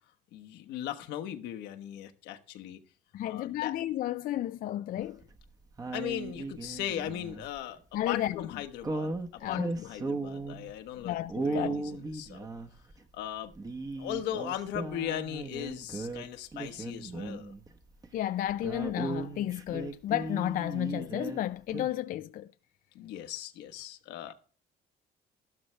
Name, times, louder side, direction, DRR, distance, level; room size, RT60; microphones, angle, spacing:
voice 1, 0.3-2.8 3.2-3.7 5.9-7.8 8.1-12.5 13.1-13.5 14.0-17.5 22.9-24.3, left 11 dB, 85° left, 1.2 m, -38 dB
voice 2, 3.1-5.2 7.9-8.5 9.4-9.9 11.0-11.8 18.1-22.5, left 13 dB, 55° left, 0.4 m, -32 dB
sound 1, 5.0-5.4 5.8-7.6 8.8-10.7 11.3-13.0 13.5-16.3 16.5-17.8 18.0-18.1 18.5-21.4 21.7-21.9, right 3 dB, 20° right, 1.2 m, -36 dB
13.0 x 12.0 x 3.3 m
cardioid pair, 110°, 17 cm